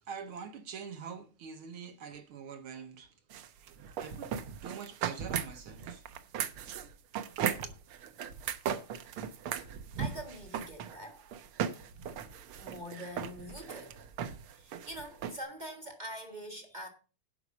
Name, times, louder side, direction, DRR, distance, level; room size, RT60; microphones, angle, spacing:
voice 1, 0.0-3.2 3.7-4.4 4.6-6.1 7.4-7.8, right 6 dB, 65° right, 1.3 m, -45 dB
sound 1, 3.3-15.4, right 8 dB, 85° right, 1.2 m, -37 dB
voice 2, 10.0-11.3 12.6-14.1 14.5-16.9, equal, 35° right, 0.7 m, -44 dB
11.5 x 4.9 x 8.2 m
omnidirectional pair, 3.6 m